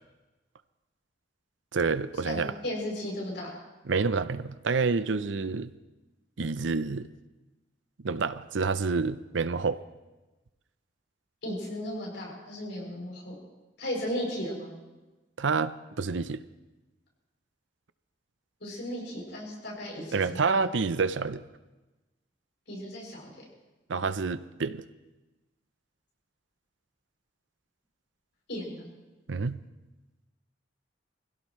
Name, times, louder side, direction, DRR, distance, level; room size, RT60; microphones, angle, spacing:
voice 1, 1.7-2.5 3.9-5.7 6.4-7.1 8.0-9.8 15.4-16.4 20.1-21.4 23.9-24.8 29.3-29.6, right 4 dB, 90° right, 14 dB, 0.7 m, -28 dB
voice 2, 2.2-3.5 11.4-13.3 13.8-14.7 18.6-20.4 22.7-23.2 28.5-28.9, equal, 70° left, -3 dB, 7.1 m, -35 dB
25.5 x 16.5 x 3.2 m, 1.1 s
head